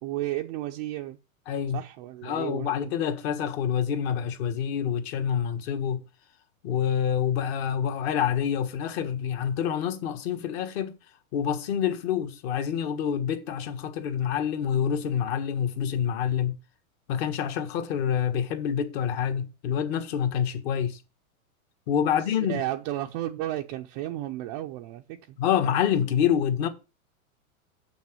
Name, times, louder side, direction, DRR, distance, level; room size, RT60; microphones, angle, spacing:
voice 1, 0.0-1.2 1.7-3.0 22.1-25.4, right 14 dB, 30° right, 0.5 m, -33 dB
voice 2, 1.5-1.8 2.2-6.0 6.6-11.0 11.3-16.6 17.1-21.0 21.9-22.6 25.4-26.7, left 8 dB, 45° left, 1.6 m, -27 dB
7.1 x 6.2 x 7.5 m
supercardioid pair, 145°, 42 cm